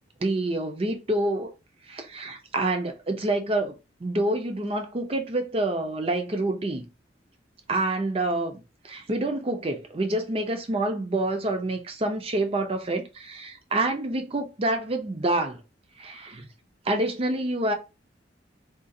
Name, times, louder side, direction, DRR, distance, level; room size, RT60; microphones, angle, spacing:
voice 1, 0.2-1.5 1.9-3.8 4.0-6.9 7.7-15.6 16.0-16.5 16.8-17.7, right 2 dB, 30° right, 0.5 m, -27 dB
3.7 x 2.4 x 2.6 m
head